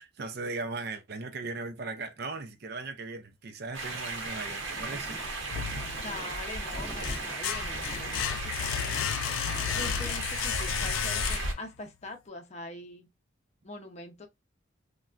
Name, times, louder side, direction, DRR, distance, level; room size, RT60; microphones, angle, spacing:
voice 1, 0.0-5.8, right 3 dB, 50° right, 0.5 m, -38 dB
sound 1, 3.7-11.5, right 2 dB, 65° right, 0.9 m, -35 dB
sound 2, 4.5-10.2, right 1 dB, 10° right, 0.7 m, -47 dB
sound 3, 5.5-6.3 6.8-11.8, left 10 dB, 85° left, 0.3 m, -33 dB
voice 2, 6.0-9.1 9.8-13.1 13.6-14.3, left 2 dB, 35° left, 0.6 m, -43 dB
3.3 x 2.2 x 2.4 m
head